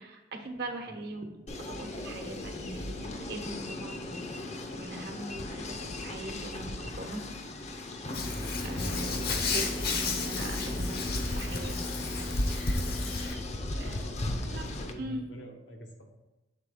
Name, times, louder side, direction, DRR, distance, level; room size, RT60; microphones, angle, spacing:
voice 1, 0.0-7.3 8.6-11.8 12.2-12.3 12.7-12.9 13.3-13.4 13.8-14.0 14.5-14.6 15.0-15.2, right 2 dB, 60° right, 4 dB, 1.0 m, -41 dB
sound 1, 1.5-14.9, left 2 dB, 40° left, 0.6 m, -38 dB
Hands, 8.1-13.4, left 3 dB, 60° left, 0.9 m, -32 dB
voice 2, 13.7-16.0, equal, 85° left, 1 dB, 1.2 m, -46 dB
7.5 x 3.8 x 4.9 m, 1.1 s
head